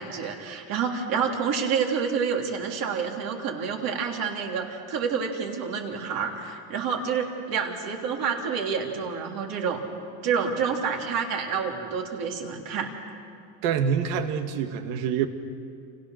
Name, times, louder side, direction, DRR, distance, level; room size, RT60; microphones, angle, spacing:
voice 1, 0.0-9.8 10.2-12.9, right 6 dB, 50° right, 1 dB, 3.4 m, -28 dB
voice 2, 13.6-15.3, right 7 dB, 65° right, 7 dB, 2.1 m, -26 dB
29.5 x 27.0 x 6.6 m, 2.4 s
cardioid pair, 165°, 47 cm